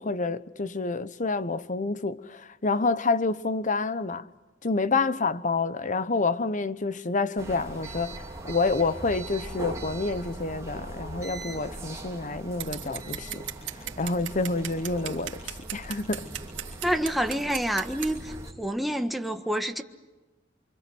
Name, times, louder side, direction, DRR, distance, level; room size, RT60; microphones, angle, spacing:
voice 1, 0.0-4.2 4.6-13.4 14.0-16.3, left 3 dB, 40° left, 1.1 m, -28 dB
sound 1, 7.4-18.5, right 2 dB, 15° right, 4.0 m, -40 dB
Scissors, 12.6-18.1, right 12 dB, 80° right, 3.3 m, -37 dB
voice 2, 16.8-19.8, equal, ahead, 1.5 m, -28 dB
29.0 x 25.0 x 7.9 m
head